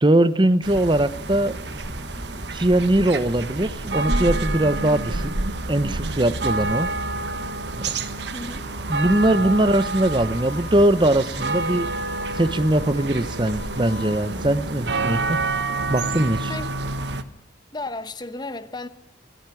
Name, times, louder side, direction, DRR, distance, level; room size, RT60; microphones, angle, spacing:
voice 1, 0.0-1.6 2.5-5.3 5.7-6.9 7.8-7.9 8.9-11.9 12.4-15.4 15.9-16.5, right 1 dB, 25° right, 0.9 m, -21 dB
sound 1, 0.6-17.2, right 3 dB, 70° right, 1.4 m, -28 dB
sound 2, 1.1-15.4, equal, 5° left, 3.1 m, -43 dB
voice 2, 8.3-8.7 16.5-16.7 17.7-18.9, left 2 dB, 25° left, 1.0 m, -33 dB
Harmonica, 10.2-14.3, left 6 dB, 70° left, 1.6 m, -42 dB
21.0 x 14.0 x 9.1 m
head